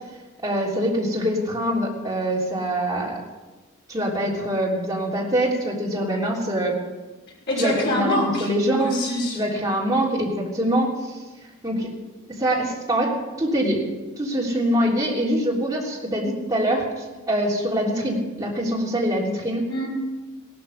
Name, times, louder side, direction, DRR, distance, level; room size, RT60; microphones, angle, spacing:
voice 1, 0.4-3.2 3.9-6.8 7.6-8.9 9.3-11.2 11.6-11.9 12.3-13.8 14.2-19.6, right 1 dB, 15° right, -4 dB, 3.4 m, -24 dB
voice 2, 7.5-8.5 8.8-9.4 19.7-19.9, left 1 dB, 55° left, -3 dB, 5.8 m, -24 dB
17.0 x 13.0 x 5.5 m, 1.2 s
head